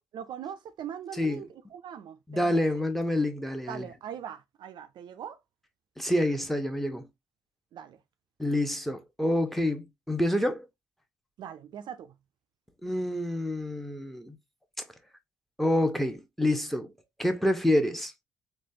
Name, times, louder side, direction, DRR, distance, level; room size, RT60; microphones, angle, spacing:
voice 1, 0.1-2.8 3.7-5.4 7.7-8.0 11.4-12.2, right 9 dB, 55° right, 0.4 m, -41 dB
voice 2, 2.3-3.8 6.0-7.1 8.4-10.7 12.8-14.4 15.6-16.9 17.2-18.1, left 1 dB, ahead, 0.7 m, -27 dB
3.2 x 2.1 x 2.6 m
hypercardioid pair, 45°, 9 cm